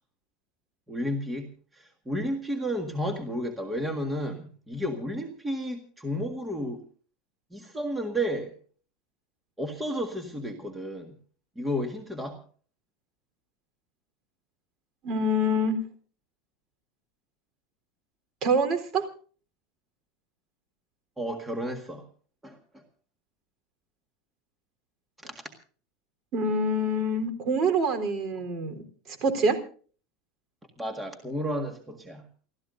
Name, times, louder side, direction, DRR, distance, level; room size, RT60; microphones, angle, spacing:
voice 1, 0.9-1.5 1.7-6.8 7.5-8.5 9.6-11.2 11.6-12.4 21.2-22.1 22.4-22.8 25.3-25.4 30.8-32.3, equal, 10° right, 4 dB, 1.8 m, -32 dB
voice 2, 15.0-15.8 18.4-19.1 26.3-28.8 29.2-29.6, right 1 dB, 40° right, 8 dB, 3.9 m, -25 dB
29.5 x 13.5 x 2.7 m, 0.43 s
supercardioid pair, 150°, 0 cm